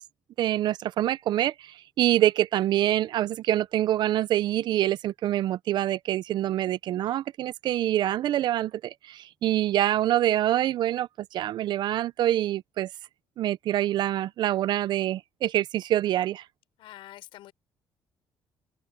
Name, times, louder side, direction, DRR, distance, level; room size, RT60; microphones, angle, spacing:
voice 1, 0.4-12.9 13.4-16.4, right 13 dB, 60° right, 0.5 m, -26 dB
voice 2, 16.8-17.5, left 15 dB, 80° left, 5.9 m, -46 dB
open air
cardioid pair, 140°, 9 cm